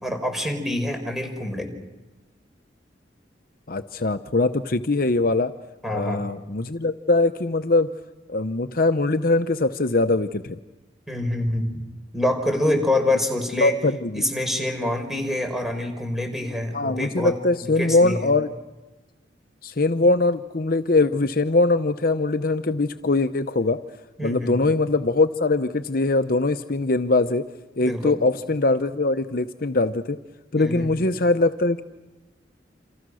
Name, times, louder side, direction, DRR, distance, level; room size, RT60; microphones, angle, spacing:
voice 1, 0.0-1.7 5.8-6.2 11.1-11.8 12.1-13.7 14.1-17.3 17.8-18.3 24.2-24.6 27.8-28.2 30.6-30.9, left 1 dB, ahead, 5 dB, 4.7 m, -26 dB
voice 2, 3.7-5.5 5.9-7.9 8.3-10.6 13.6-14.2 16.7-18.5 19.6-23.8 24.2-27.5 27.8-30.2 30.5-31.8, left 2 dB, 55° left, 10 dB, 0.8 m, -22 dB
29.0 x 28.0 x 6.4 m, 1.1 s
head